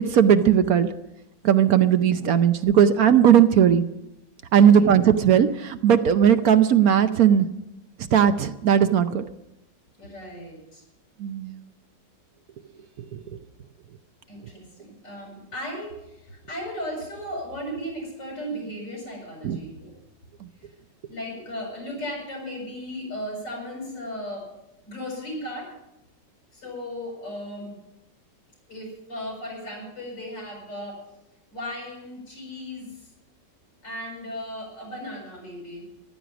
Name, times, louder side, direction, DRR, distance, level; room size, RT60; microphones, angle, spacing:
voice 1, 0.1-0.9 1.4-3.8 4.5-7.5 8.1-9.2 11.2-11.6 13.1-13.2 19.4-19.6, right 9 dB, 65° right, 10 dB, 1.1 m, -18 dB
voice 2, 4.6-4.9 10.0-10.8 13.1-13.4 14.3-19.9 21.0-24.5 24.9-25.7 26.5-27.8 28.7-31.0 31.5-33.1 33.8-35.9, equal, 90° left, -1 dB, 7.8 m, -36 dB
14.5 x 12.5 x 6.0 m, 0.88 s
omnidirectional pair, 1.9 m